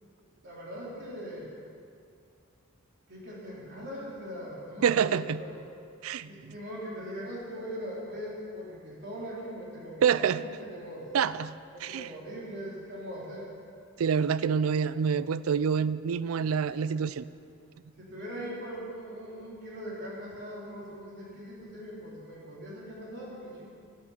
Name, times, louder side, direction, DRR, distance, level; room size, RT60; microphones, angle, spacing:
voice 1, 0.4-1.6 3.1-5.6 6.2-11.1 11.7-13.5 16.8-17.0 18.0-23.7, equal, 55° right, -6 dB, 4.0 m, -41 dB
voice 2, 4.8-5.4 6.0-6.5 10.0-10.4 11.1-11.6 11.8-12.1 14.0-17.2, right 7 dB, 80° right, 17 dB, 0.4 m, -27 dB
12.5 x 11.0 x 6.0 m, 2.4 s
head